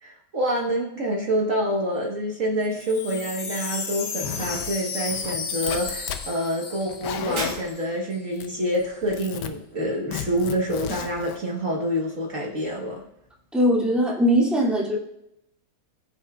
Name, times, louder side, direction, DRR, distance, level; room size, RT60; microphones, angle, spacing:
voice 1, 0.0-13.0, equal, 50° right, -2 dB, 1.6 m, -27 dB
Wind chime, 2.6-7.9 8.1-8.2 8.4-8.9, left 5 dB, 65° left, 1.5 m, -34 dB
Zipper (clothing), 4.2-4.7 5.1-6.3 6.8-7.7 8.4-8.8 9.0-9.5 10.1-11.4, left 9 dB, 80° left, 1.4 m, -34 dB
Shatter, 7.4-8.2, right 1 dB, 85° right, 2.7 m, -33 dB
voice 2, 13.5-15.0, equal, ahead, -5 dB, 2.1 m, -20 dB
21.0 x 7.0 x 2.3 m, 0.81 s
omnidirectional pair, 1.8 m